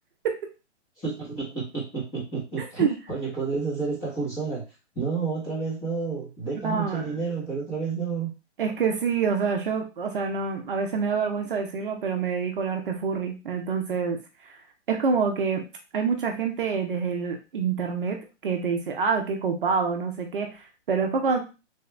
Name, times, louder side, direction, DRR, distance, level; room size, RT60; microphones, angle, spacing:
voice 1, 1.0-4.6 4.9-8.3, right 5 dB, 10° left, -6 dB, 0.9 m, -30 dB
voice 2, 2.6-2.9 6.6-7.2 8.6-14.2 14.5-14.6 14.9-15.6 15.9-18.2 18.4-21.4, right 5 dB, 45° right, 3 dB, 0.6 m, -26 dB
3.4 x 2.4 x 3.1 m, 0.29 s
hypercardioid pair, 160°, 36 cm